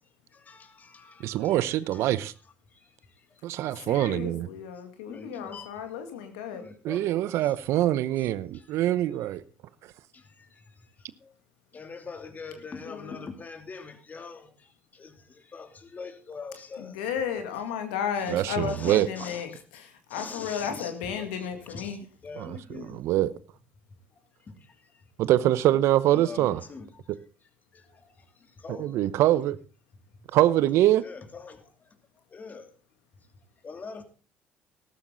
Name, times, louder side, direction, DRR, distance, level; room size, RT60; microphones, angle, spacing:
voice 1, 0.3-2.3 2.7-3.4 3.7-3.8 5.1-5.8 6.5-7.6 8.2-9.0 10.1-11.3 11.7-17.0 18.2-18.3 18.6-19.6 20.1-23.0 24.1-25.1 26.0-27.2 27.7-29.0 31.0-32.7 33.3-34.0, left 4 dB, 35° left, 2.8 m, -44 dB
voice 2, 1.2-2.3 3.4-4.5 6.8-9.4 18.3-19.1 22.4-23.3 25.2-26.6 28.7-29.6 30.3-31.0, right 14 dB, 70° right, 0.7 m, -24 dB
voice 3, 3.8-6.6 12.8-13.3 16.8-22.0, left 8 dB, 90° left, 2.0 m, -34 dB
14.0 x 12.5 x 3.9 m
supercardioid pair, 70°, 5 cm